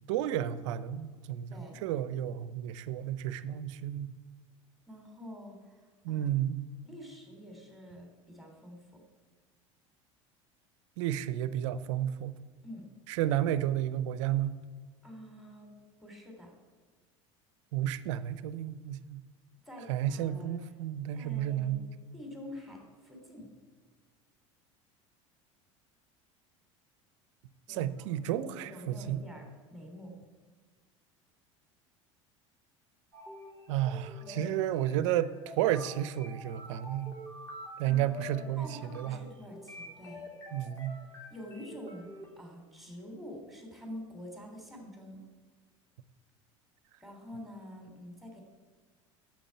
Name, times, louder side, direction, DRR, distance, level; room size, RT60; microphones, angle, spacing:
voice 1, 0.1-1.5 1.8-4.1 6.0-6.7 11.0-12.3 13.1-14.6 17.7-19.2 19.9-21.9 27.7-29.2 33.7-37.2 37.8-38.7 38.9-39.2 40.5-41.0, right 11 dB, 70° right, 15 dB, 0.7 m, -32 dB
voice 2, 1.5-1.8 4.9-6.3 6.8-9.0 12.6-12.9 15.0-15.7 16.0-16.5 19.6-20.6 21.1-21.8 22.1-23.5 27.7-28.1 28.4-30.1 34.2-34.6 34.9-35.0 37.8-40.3 41.3-45.2 47.0-48.4, equal, ahead, 1 dB, 3.3 m, -47 dB
sound 1, 33.1-42.3, left 1 dB, 20° left, 3.4 m, -48 dB
9.1 x 7.7 x 8.7 m, 1.4 s
hypercardioid pair, 80°, 16 cm